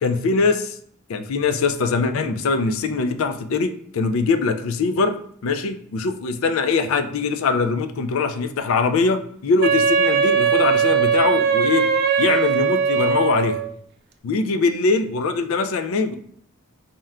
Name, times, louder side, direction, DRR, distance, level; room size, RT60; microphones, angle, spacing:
voice 1, 0.0-0.7 1.1-11.9 12.2-13.6 14.2-16.2, left 4 dB, 70° left, 9 dB, 0.3 m, -22 dB
Wind instrument woodwind instrument, 9.6-13.7, right 6 dB, 45° right, 0.3 m, -19 dB
4.3 x 2.2 x 3.6 m, 0.63 s
head